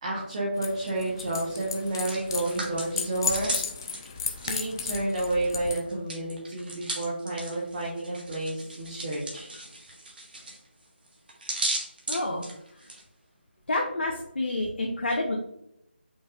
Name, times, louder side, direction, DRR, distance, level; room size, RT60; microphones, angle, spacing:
voice 1, 0.0-3.5 4.5-9.5, right 2 dB, 30° right, -5 dB, 0.9 m, -30 dB
sound 1, 0.6-5.8, left 6 dB, 20° left, 0.3 m, -34 dB
Hands, 1.8-5.5 5.7-13.0, right 2 dB, 55° right, 1.5 m, -36 dB
voice 2, 12.1-12.4 13.7-15.4, left 2 dB, 65° left, -1 dB, 0.8 m, -28 dB
5.3 x 3.5 x 2.4 m, 0.80 s
figure-of-eight pair, 165°, 6 cm